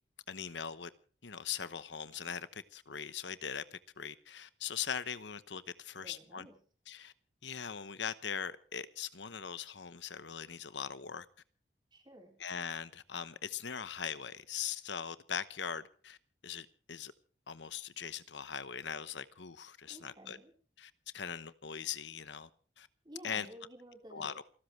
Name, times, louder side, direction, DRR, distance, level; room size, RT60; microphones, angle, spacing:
voice 1, 0.3-0.9 1.2-6.5 6.9-7.1 7.4-11.3 12.4-16.2 16.4-17.1 17.5-20.4 20.8-22.5 22.8-22.9 23.2-23.5 24.1-24.4, left 7 dB, 85° left, 1.0 m, -41 dB
voice 2, 6.0-6.6 11.9-12.4 19.9-20.5 23.0-24.4, right 1 dB, 25° right, 4.1 m, -53 dB
28.5 x 13.5 x 3.2 m
head